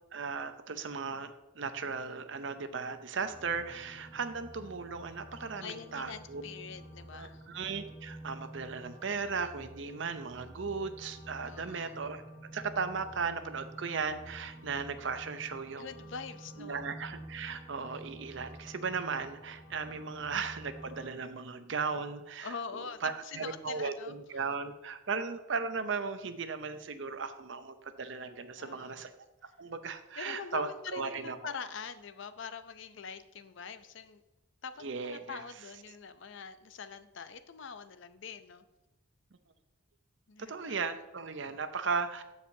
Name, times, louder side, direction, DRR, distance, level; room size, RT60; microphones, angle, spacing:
voice 1, 0.1-6.4 7.1-12.2 12.5-15.9 16.6-22.5 23.0-29.1 29.4-31.4 34.8-35.4 40.5-42.2, right 5 dB, 60° right, 10 dB, 0.6 m, -36 dB
sound 1, 3.1-21.0, right 1 dB, 30° right, 1.7 m, -50 dB
voice 2, 5.4-7.4 11.4-11.9 15.7-16.8 22.4-24.4 28.6-29.1 30.2-34.2 34.6-38.7 40.3-40.8, left 6 dB, 60° left, 11 dB, 0.5 m, -44 dB
14.0 x 4.8 x 2.7 m, 1.0 s
head